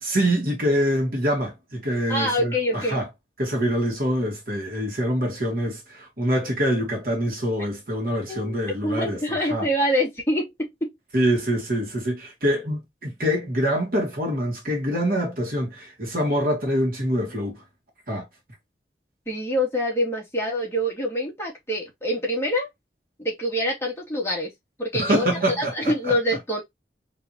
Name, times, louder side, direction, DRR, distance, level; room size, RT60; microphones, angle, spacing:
voice 1, 0.0-3.1 3.4-9.7 11.1-17.6 18.1-18.3 25.0-26.2, equal, 55° right, 2.1 m, -25 dB
voice 2, 2.1-3.0 8.3-10.9 19.3-22.7 23.2-24.5 24.8-26.6, equal, 15° left, 1.9 m, -26 dB
4.5 x 3.4 x 2.8 m
head